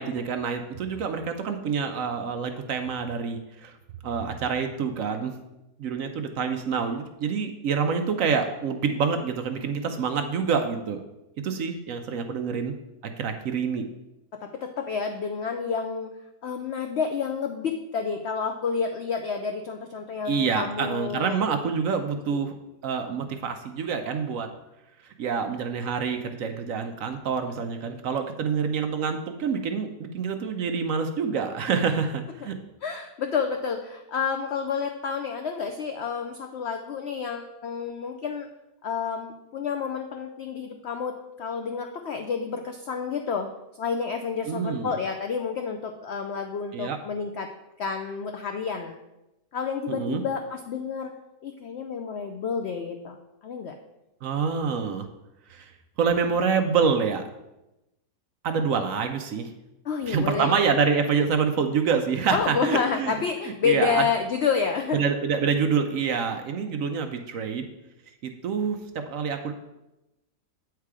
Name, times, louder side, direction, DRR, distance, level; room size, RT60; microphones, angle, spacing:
voice 1, 0.0-3.7 4.0-5.3 5.8-11.0 11.4-12.7 13.2-13.9 20.3-22.5 22.8-24.5 25.0-32.5 44.5-44.9 46.7-47.0 49.9-50.2 54.2-55.1 55.5-55.7 56.0-57.2 58.4-59.5 60.1-63.1 63.4-64.1 64.9-67.7 68.2-69.5, right 6 dB, 65° right, 6 dB, 0.9 m, -27 dB
voice 2, 14.4-16.1 16.4-21.4 22.3-22.4 32.4-32.5 32.8-38.5 38.8-43.5 43.8-47.5 47.8-48.9 49.5-51.1 51.4-53.2 53.4-53.7 59.9-60.5 62.3-65.0, left 6 dB, 80° left, 5 dB, 0.5 m, -29 dB
8.4 x 4.6 x 4.8 m, 0.94 s
omnidirectional pair, 1.7 m